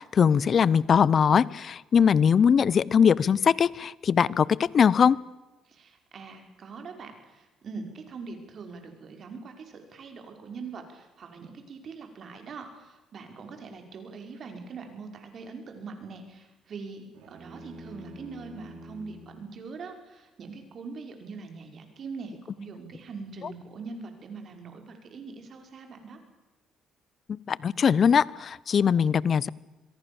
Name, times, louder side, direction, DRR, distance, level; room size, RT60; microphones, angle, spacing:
voice 1, 0.0-5.2 27.3-29.5, left 7 dB, 50° left, 23 dB, 0.8 m, -21 dB
voice 2, 5.7-26.2, right 4 dB, 55° right, 5 dB, 5.6 m, -42 dB
sound 1, 17.1-19.4, right 1 dB, 80° right, 5.0 m, -46 dB
26.0 x 22.0 x 7.2 m, 1.1 s
cardioid pair, 80°, 0 cm